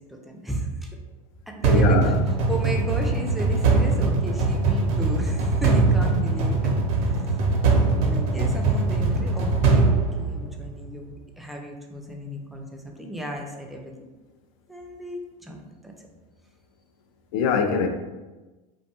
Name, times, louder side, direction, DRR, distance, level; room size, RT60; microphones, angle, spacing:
voice 1, 0.1-1.0 1.5-2.1 2.5-7.3 7.7-13.9 14.7-15.6 15.8-15.9, right 1 dB, ahead, 1 dB, 0.3 m, -35 dB
sound 1, 1.6-10.8, right 3 dB, 65° right, 0.6 m, -21 dB
voice 2, 1.7-2.2 17.3-17.9, left 5 dB, 70° left, 5 dB, 0.4 m, -22 dB
2.5 x 2.2 x 2.8 m, 1.1 s
supercardioid pair, 105°, 18 cm